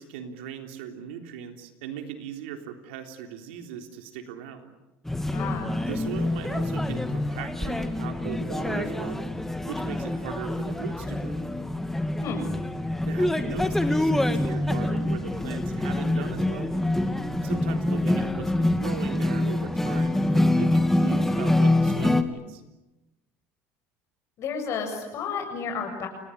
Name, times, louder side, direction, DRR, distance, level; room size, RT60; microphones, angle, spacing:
voice 1, 0.0-4.7 5.8-9.3 9.7-11.5 13.0-16.7 17.4-22.6, right 8 dB, 85° right, 6 dB, 3.6 m, -38 dB
sound 1, 5.0-22.2, left 1 dB, 5° left, 2.5 m, -26 dB
voice 2, 5.3-5.7 12.2-12.4 24.4-26.1, left 6 dB, 55° left, 3 dB, 7.5 m, -31 dB
29.0 x 20.0 x 10.0 m, 1.0 s
supercardioid pair, 90°, 6 cm